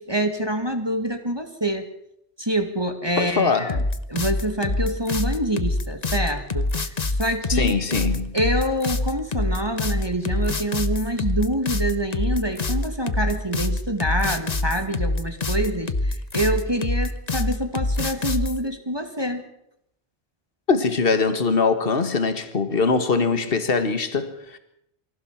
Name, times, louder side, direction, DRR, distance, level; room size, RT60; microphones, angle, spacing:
voice 1, 0.0-1.9 2.4-3.8 4.1-7.9 8.3-19.5, right 1 dB, 20° right, 2.0 m, -26 dB
voice 2, 3.2-3.8 7.5-8.4 20.7-24.6, left 4 dB, 55° left, 1.9 m, -22 dB
sound 1, 3.7-18.6, left 2 dB, 40° left, 1.1 m, -25 dB
24.0 x 16.5 x 7.3 m
omnidirectional pair, 1.1 m